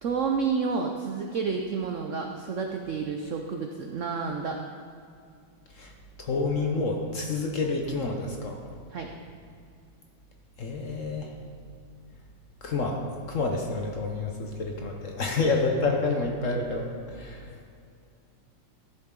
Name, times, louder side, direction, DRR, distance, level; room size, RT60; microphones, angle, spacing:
voice 1, 0.0-4.6 8.9-9.1, right 5 dB, 75° right, 3 dB, 0.7 m, -30 dB
voice 2, 6.2-8.6 10.6-11.3 12.6-13.0 13.3-17.5, left 3 dB, 55° left, 1 dB, 0.9 m, -28 dB
13.5 x 7.6 x 3.7 m, 2.4 s
omnidirectional pair, 2.1 m